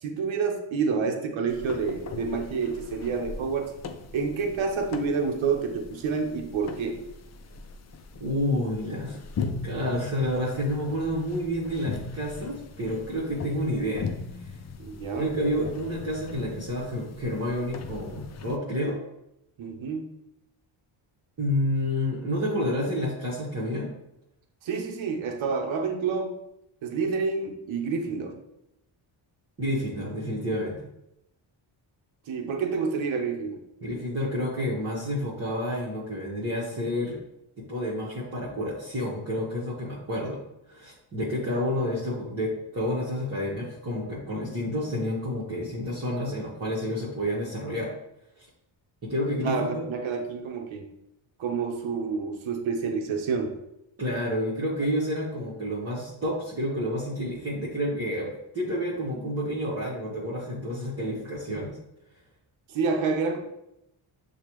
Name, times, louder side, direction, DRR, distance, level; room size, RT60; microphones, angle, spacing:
voice 1, 0.0-3.7 4.1-7.0 14.8-15.3 19.6-20.1 24.6-26.4 26.8-28.4 32.3-33.6 49.4-50.8 51.4-53.5 62.7-63.4, right 5 dB, 70° right, 3 dB, 0.8 m, -28 dB
sound 1, 1.5-18.6, left 4 dB, 35° left, 0.4 m, -39 dB
voice 2, 8.2-9.2 9.6-14.1 14.3-14.6 15.1-19.0 21.4-23.9 29.6-30.9 33.8-37.2 37.6-47.9 48.4-48.5 49.0-49.8 54.0-61.8, equal, 30° right, -7 dB, 1.1 m, -29 dB
6.5 x 2.3 x 3.0 m, 0.84 s
cardioid pair, 85°, 49 cm